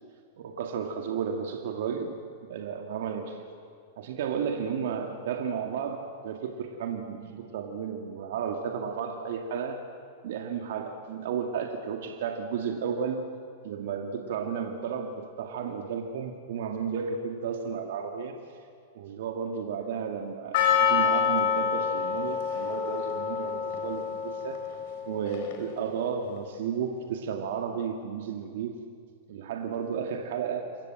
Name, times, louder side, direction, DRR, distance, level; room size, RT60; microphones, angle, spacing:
voice 1, 0.4-2.2 2.5-3.4 4.0-9.8 10.2-13.2 13.6-18.3 18.9-24.6 25.1-28.7 29.3-30.7, right 6 dB, 65° right, 3 dB, 2.2 m, -33 dB
Percussion, 20.5-25.8, left 7 dB, 60° left, 4.2 m, -27 dB
28.0 x 23.0 x 7.8 m, 2.2 s
hypercardioid pair, 100°, 0 cm